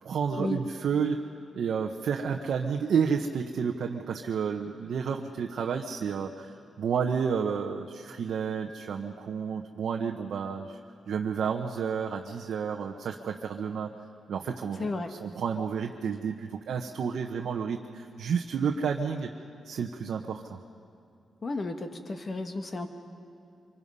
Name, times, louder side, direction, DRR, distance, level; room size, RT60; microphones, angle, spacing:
voice 1, 0.0-1.2 1.5-10.8 11.1-13.9 14.3-19.3 19.6-20.6, right 6 dB, 65° right, 2 dB, 1.0 m, -31 dB
voice 2, 14.8-15.1 21.4-22.9, left 2 dB, 30° left, 6 dB, 1.4 m, -33 dB
25.5 x 24.5 x 5.5 m, 2.7 s
wide cardioid pair, 170°, 0 cm